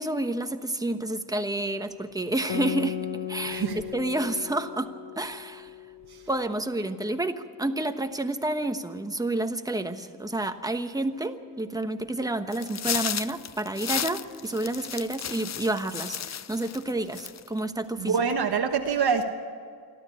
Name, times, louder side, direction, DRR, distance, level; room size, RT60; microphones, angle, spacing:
voice 1, 0.0-3.7 3.9-4.9 5.2-5.7 6.3-18.1, right 2 dB, 10° right, 7 dB, 1.1 m, -30 dB
Guitar, 2.5-7.4, left 11 dB, 75° left, 0.8 m, -37 dB
voice 2, 3.4-3.8 6.1-6.2 18.0-19.2, right 6 dB, 60° right, 2 dB, 1.3 m, -25 dB
sound 1, 12.5-16.8 17.1-17.6, left 8 dB, 40° left, 0.5 m, -33 dB
27.5 x 12.5 x 8.4 m, 2.2 s
wide cardioid pair, 120°, 43 cm